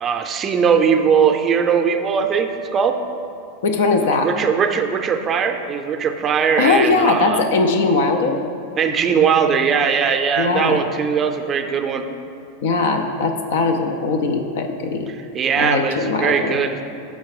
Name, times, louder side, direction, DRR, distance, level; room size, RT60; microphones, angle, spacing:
voice 1, 0.0-3.0 4.0-7.4 8.8-12.1 15.3-16.8, right 6 dB, 30° right, 5 dB, 0.5 m, -19 dB
voice 2, 3.6-4.3 6.6-8.4 10.4-10.8 12.6-15.1 15.6-16.6, left 3 dB, 75° left, 5 dB, 0.5 m, -19 dB
5.7 x 5.3 x 4.8 m, 2.5 s
hypercardioid pair, 120°, 0 cm